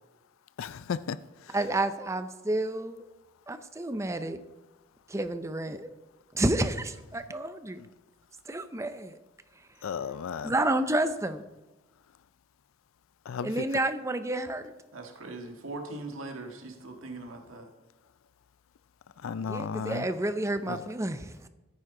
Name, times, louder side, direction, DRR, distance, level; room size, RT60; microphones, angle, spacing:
voice 1, 0.6-1.6 7.8-7.9 9.8-10.5 13.3-13.6 19.2-20.1 20.7-20.9, left 6 dB, 80° left, 0.4 m, -35 dB
voice 2, 1.5-3.1 3.5-4.4 5.1-5.9 6.3-7.8 8.5-9.2 10.4-11.4 13.4-14.7 19.4-21.5, right 1 dB, 15° right, 0.5 m, -30 dB
voice 3, 14.9-17.7, right 2 dB, 85° right, 1.6 m, -40 dB
14.0 x 9.5 x 3.8 m
head